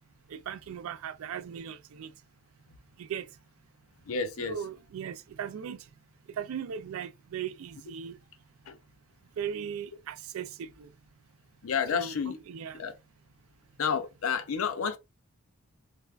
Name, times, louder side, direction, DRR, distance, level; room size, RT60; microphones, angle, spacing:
voice 1, 0.3-2.1 3.0-3.3 4.4-5.8 6.3-8.2 9.4-10.9 11.9-12.1 12.5-12.8, right 8 dB, 65° right, 0.3 m, -38 dB
voice 2, 4.0-4.6 8.7-8.8 11.6-12.4 12.7-12.9 13.8-15.0, left 6 dB, 65° left, 0.5 m, -30 dB
3.4 x 2.1 x 2.3 m
head